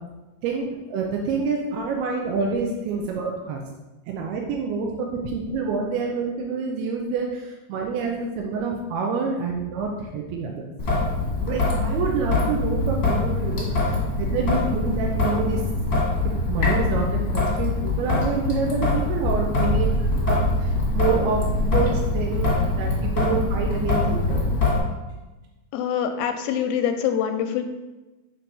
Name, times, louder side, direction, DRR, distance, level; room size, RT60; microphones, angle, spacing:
voice 1, 0.4-3.6 4.1-10.6 11.4-15.6 16.5-22.9 23.2-24.5, right 5 dB, 85° right, 0 dB, 2.7 m, -27 dB
Traffic noise roadway noise / Drip / Trickle dribble, 10.8-24.8, left 2 dB, 40° left, 1.3 m, -23 dB
voice 2, 25.7-27.6, left 8 dB, 80° left, 7 dB, 2.2 m, -24 dB
6.2 x 4.4 x 5.3 m, 1.1 s
omnidirectional pair, 4.5 m